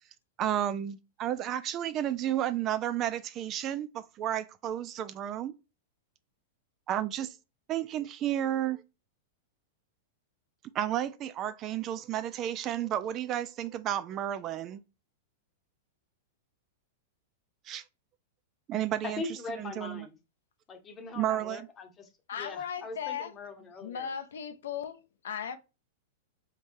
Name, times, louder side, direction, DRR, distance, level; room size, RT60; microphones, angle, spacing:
voice 1, 0.4-5.5 6.9-7.3 7.7-8.8 10.7-14.8 17.7-17.8 18.7-19.2 19.6-20.1 21.2-21.7, right 11 dB, 35° right, 0.3 m, -32 dB
voice 2, 19.0-20.1 20.7-24.1, left 3 dB, 25° left, 0.9 m, -41 dB
voice 3, 22.3-23.3 23.8-25.0 25.2-25.6, left 8 dB, 80° left, 0.5 m, -36 dB
3.6 x 3.1 x 2.6 m
hypercardioid pair, 120°, 0 cm